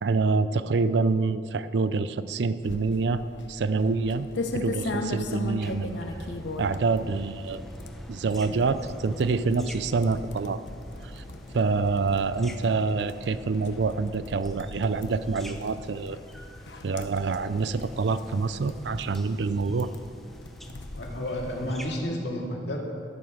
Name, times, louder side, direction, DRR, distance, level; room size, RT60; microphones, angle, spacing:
voice 1, 0.0-3.2 3.5-4.3 4.5-6.0 6.6-7.6 8.1-10.6 11.2-11.3 11.5-16.2 16.8-19.9, right 4 dB, 70° right, 13 dB, 0.4 m, -26 dB
sound 1, 2.6-21.8, left 2 dB, 85° left, 0.9 m, -39 dB
sound 2, 5.6-22.0, equal, ahead, 0.8 m, -45 dB
voice 2, 20.9-22.8, left 1 dB, 65° left, -1 dB, 2.2 m, -31 dB
12.5 x 8.8 x 6.3 m, 2.3 s
head